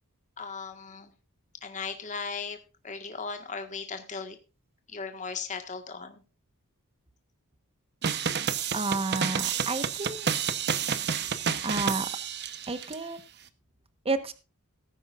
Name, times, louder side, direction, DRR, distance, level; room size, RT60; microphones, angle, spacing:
voice 1, 0.4-1.1 1.6-2.6 2.8-4.4 4.9-6.2, left 5 dB, 35° left, 5 dB, 1.7 m, -37 dB
sound 1, 8.0-13.0, right 7 dB, 50° right, 1.0 m, -30 dB
voice 2, 8.7-10.3 11.6-12.1 12.7-13.2 14.0-14.3, right 3 dB, 25° right, 10 dB, 1.2 m, -30 dB
18.5 x 9.9 x 2.5 m, 0.31 s
head